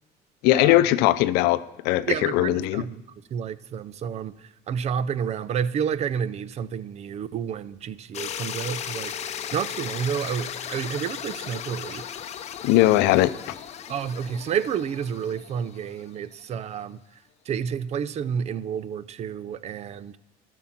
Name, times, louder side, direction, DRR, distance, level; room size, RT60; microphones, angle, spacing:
voice 1, 0.4-2.8 12.6-13.3, left 15 dB, 80° left, 0.5 m, -20 dB
voice 2, 2.1-12.0 13.9-17.0 17.5-20.2, right 8 dB, 40° right, 0.5 m, -30 dB
sound 1, 8.1-16.1, left 9 dB, 40° left, 0.7 m, -36 dB
12.5 x 6.3 x 5.7 m
cardioid pair, 120°, 17 cm